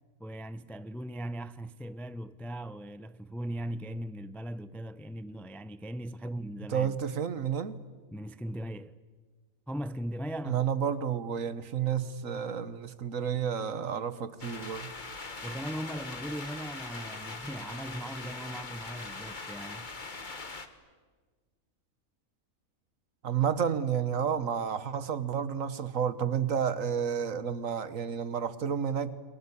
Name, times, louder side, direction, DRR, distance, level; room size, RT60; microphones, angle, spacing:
voice 1, 0.2-7.0 8.1-8.9 9.7-10.7 15.4-19.9, right 1 dB, ahead, 0.3 m, -39 dB
voice 2, 6.7-7.8 10.5-14.9 23.2-29.1, right 8 dB, 65° right, 1.6 m, -31 dB
sound 1, 14.4-20.7, left 3 dB, 35° left, 1.8 m, -41 dB
29.5 x 23.0 x 8.5 m
omnidirectional pair, 1.5 m